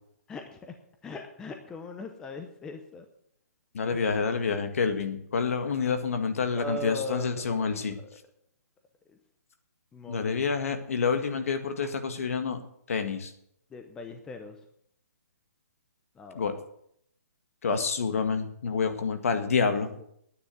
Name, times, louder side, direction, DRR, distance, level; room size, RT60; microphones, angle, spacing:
voice 1, 0.3-0.8 1.0-3.1 3.9-4.0 6.5-8.1 9.9-10.3 13.7-14.6 16.2-16.5 20.0-20.1, left 2 dB, 5° left, 6 dB, 0.7 m, -39 dB
voice 2, 3.7-8.0 10.1-12.6 12.9-13.3 16.3-16.5 17.6-19.9, left 5 dB, 60° left, 8 dB, 1.9 m, -28 dB
9.8 x 9.7 x 7.9 m, 0.71 s
hypercardioid pair, 165°, 9 cm